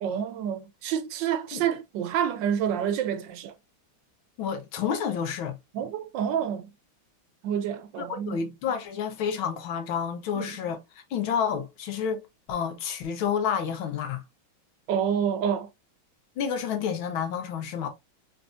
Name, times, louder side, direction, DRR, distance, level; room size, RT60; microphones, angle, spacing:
voice 1, 0.0-3.5 5.7-6.7 7.4-8.4 10.3-10.5 14.9-15.7, right 8 dB, 75° right, 1.2 m, -28 dB
voice 2, 4.4-5.6 8.1-10.8 11.1-14.2 16.4-17.9, left 7 dB, 85° left, 1.8 m, -29 dB
4.0 x 3.9 x 2.6 m
omnidirectional pair, 2.2 m